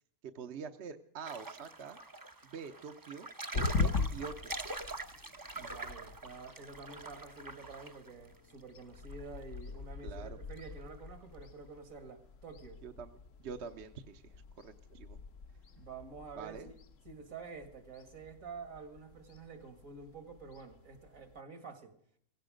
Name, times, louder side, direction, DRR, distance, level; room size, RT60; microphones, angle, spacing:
voice 1, 0.2-2.0 2.4-3.3 3.5-4.5 10.0-10.4 12.8-13.1 13.4-14.3 14.6-15.2 16.4-16.7, right 6 dB, 55° right, 7 dB, 1.1 m, -45 dB
sound 1, 1.3-8.1 8.4-8.5 8.8-9.8 10.1-10.2 10.6-10.7 10.9-11.1, right 2 dB, 20° right, 0.6 m, -44 dB
sound 2, 3.5-21.4, left 4 dB, 65° left, 1.3 m, -42 dB
voice 2, 5.5-12.8 15.7-16.7 17.0-21.9, right 4 dB, 75° right, 8 dB, 2.5 m, -49 dB
17.5 x 16.5 x 5.1 m, 0.64 s
omnidirectional pair, 1.5 m